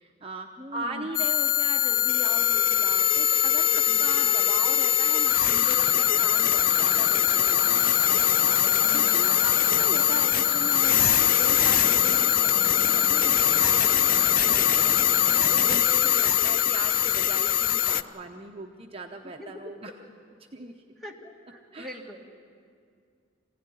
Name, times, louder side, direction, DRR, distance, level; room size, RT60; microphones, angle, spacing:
voice 1, 0.0-20.0 20.5-20.7 21.7-22.1, right 2 dB, 30° right, 2 dB, 0.8 m, -39 dB
voice 2, 0.6-1.1 3.7-4.1 8.8-9.1 19.4-19.5 20.6-20.7 21.0-22.3, equal, ahead, 0 dB, 2.0 m, -42 dB
sound 1, 1.1-18.0, left 11 dB, 50° left, 0.5 m, -22 dB
sound 2, 5.8-15.8, right 3 dB, 80° right, 0.9 m, -37 dB
24.0 x 16.5 x 9.9 m, 2.3 s
head